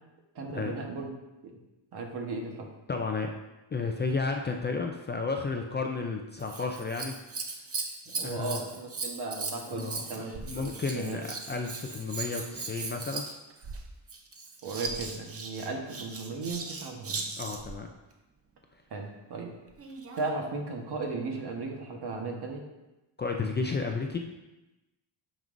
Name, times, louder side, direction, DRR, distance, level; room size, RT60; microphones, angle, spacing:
voice 1, 0.3-1.1 1.4-1.6 1.9-2.7 8.1-11.2 14.6-17.3 18.9-19.5 20.2-22.6, right 3 dB, 60° right, 1 dB, 1.3 m, -36 dB
voice 2, 2.9-3.3 3.7-7.2 8.2-8.6 9.7-13.3 17.4-17.9 23.2-24.2, left 4 dB, 25° left, 2 dB, 0.4 m, -32 dB
Scissors, 6.4-17.8 19.7-20.3 21.0-21.1, right 4 dB, 30° right, 0.7 m, -38 dB
9.1 x 5.4 x 2.6 m, 0.99 s
cardioid pair, 140°, 45 cm